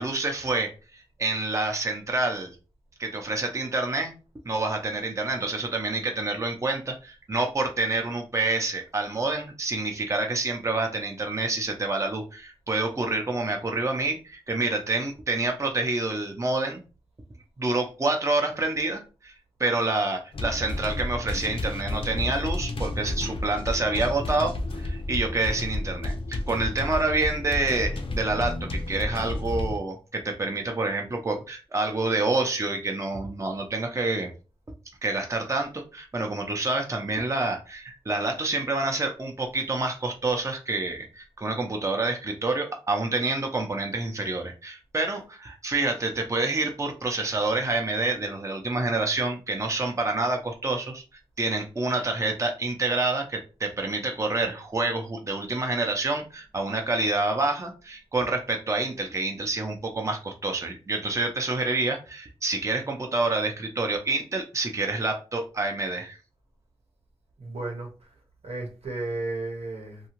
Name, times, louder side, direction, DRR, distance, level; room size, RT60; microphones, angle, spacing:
voice 1, 0.0-2.6 3.0-4.1 4.5-16.8 17.6-19.3 19.6-34.3 35.0-51.0 51.4-66.2, right 2 dB, 30° right, 3 dB, 0.5 m, -28 dB
sound 1, 20.3-29.8, left 2 dB, 60° left, 0.5 m, -31 dB
voice 2, 67.4-67.9 68.4-70.0, right 2 dB, 80° right, 0 dB, 0.9 m, -33 dB
2.7 x 2.3 x 2.9 m, 0.34 s
wide cardioid pair, 60°, 10 cm